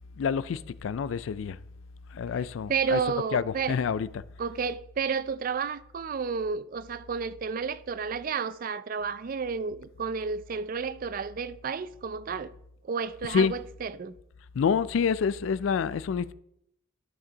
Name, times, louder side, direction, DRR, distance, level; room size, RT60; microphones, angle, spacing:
voice 1, 0.2-1.6 2.1-3.0 3.3-4.2 13.3-13.6 14.5-16.3, left 6 dB, 75° left, 0.3 m, -27 dB
voice 2, 2.7-3.8 4.4-12.5 12.8-14.1, right 5 dB, 45° right, 0.4 m, -31 dB
11.5 x 6.0 x 3.8 m
head